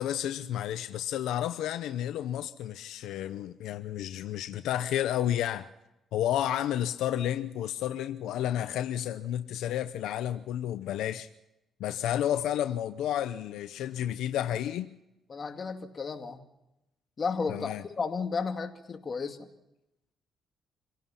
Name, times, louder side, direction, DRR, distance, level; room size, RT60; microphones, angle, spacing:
voice 1, 0.0-5.7 6.1-11.3 11.8-14.9 17.5-17.8, left 11 dB, 85° left, 0.7 m, -31 dB
voice 2, 15.3-16.4 17.2-19.4, left 5 dB, 40° left, 2.2 m, -33 dB
27.0 x 16.5 x 5.8 m
cardioid pair, 90°, 0 cm